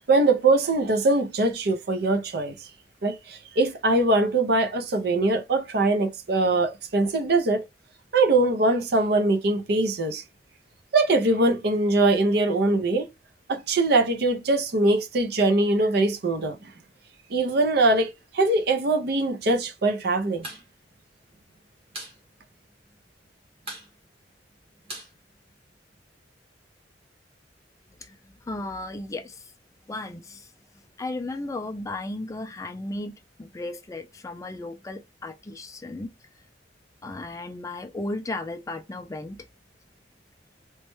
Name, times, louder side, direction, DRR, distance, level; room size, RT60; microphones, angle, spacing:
voice 1, 0.1-2.5 3.0-7.6 8.1-10.2 10.9-13.1 13.5-16.7 17.3-20.5, right 2 dB, 60° right, 0.6 m, -22 dB
sound 1, 20.4-20.7 20.9-21.0 21.3-22.2 22.5-22.6 22.9-23.3 23.6-26.0, right 1 dB, 30° right, 1.2 m, -40 dB
voice 2, 28.5-29.4 29.9-30.5 31.0-33.1 33.4-36.1 37.0-39.4, left 2 dB, 15° left, 0.3 m, -35 dB
3.0 x 2.2 x 3.0 m
head